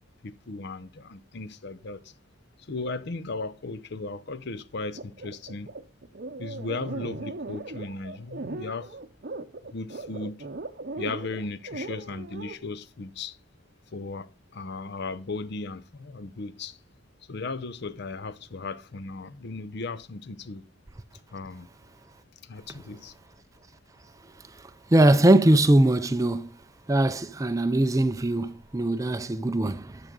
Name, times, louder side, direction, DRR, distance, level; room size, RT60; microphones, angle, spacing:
voice 1, 0.2-2.1 2.6-5.7 6.4-9.0 9.7-10.5 11.0-13.4 13.9-16.8 17.3-20.7 21.3-21.7 22.4-23.1, left 3 dB, 50° left, 0.6 m, -36 dB
sound 1, 5.0-12.6, right 2 dB, 45° right, 0.7 m, -38 dB
voice 2, 24.9-26.5 26.9-30.0, right 1 dB, 15° right, 0.4 m, -21 dB
12.5 x 6.6 x 3.7 m
head